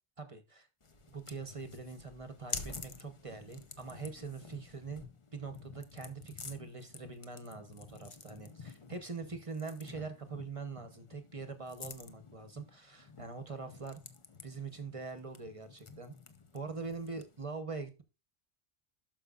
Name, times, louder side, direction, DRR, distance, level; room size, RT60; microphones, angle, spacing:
voice 1, 0.2-0.7 1.1-5.0 5.3-14.0 14.4-16.1 16.5-18.0, right 4 dB, 35° right, 9 dB, 0.9 m, -43 dB
sound 1, 0.8-17.4, left 4 dB, 30° left, 0.8 m, -49 dB
12.0 x 5.5 x 2.4 m, 0.30 s
omnidirectional pair, 1.1 m